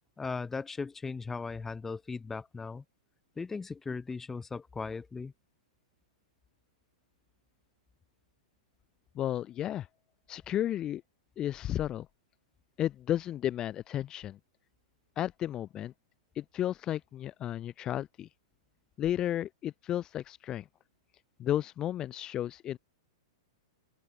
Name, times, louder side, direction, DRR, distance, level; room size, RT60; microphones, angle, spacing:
voice 1, 0.2-2.8 3.4-5.3, left 4 dB, 10° left, 6.1 m, -38 dB
voice 2, 9.2-9.9 10.3-11.0 11.4-12.1 12.8-14.4 15.2-15.9 16.4-18.3 19.0-20.6 21.4-22.8, left 12 dB, 30° left, 3.8 m, -33 dB
open air
hypercardioid pair, 110°, 3 cm